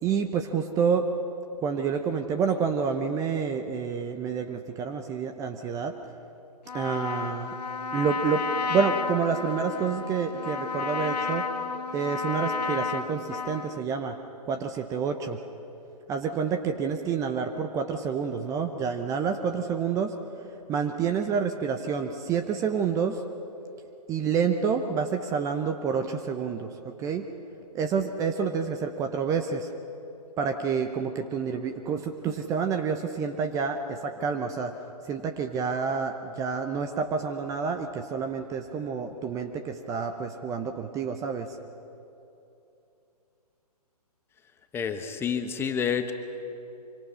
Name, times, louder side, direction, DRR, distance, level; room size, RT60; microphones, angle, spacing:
voice 1, 0.0-1.1 1.6-5.9 6.7-7.6 7.9-11.4 11.9-14.2 14.4-15.4 16.1-20.1 20.7-23.2 24.1-27.3 27.7-29.7 30.4-34.7 35.0-41.6, right 6 dB, 15° right, 6 dB, 0.8 m, -28 dB
Trumpet, 6.7-13.8, left 4 dB, 80° left, 1.5 m, -32 dB
voice 2, 44.7-46.1, left 7 dB, 10° left, 7 dB, 0.9 m, -28 dB
25.0 x 24.5 x 5.7 m, 2.8 s
figure-of-eight pair, 135°, 21 cm